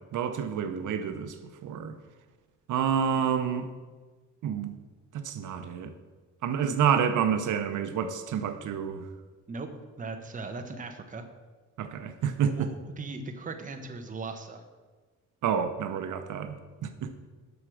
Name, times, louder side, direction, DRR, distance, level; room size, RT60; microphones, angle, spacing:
voice 1, 0.1-1.4 1.6-1.9 2.7-3.7 4.4-4.7 5.1-5.9 6.4-9.1 11.8-12.7 15.4-17.1, right 8 dB, 80° right, 9 dB, 0.8 m, -28 dB
voice 2, 10.0-11.3 12.5-14.6, right 3 dB, 25° right, 5 dB, 0.9 m, -38 dB
8.0 x 6.1 x 6.3 m, 1.3 s
cardioid pair, 150°, 30 cm